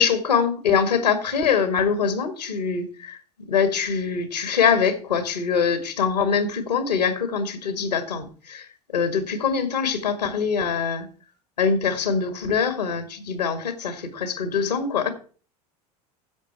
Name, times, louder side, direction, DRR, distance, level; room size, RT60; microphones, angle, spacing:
voice 1, 0.0-3.2 3.5-11.1 11.6-15.1, left 6 dB, 90° left, 9 dB, 1.9 m, -23 dB
11.0 x 7.3 x 4.5 m, 0.39 s
hypercardioid pair, 80°, 20 cm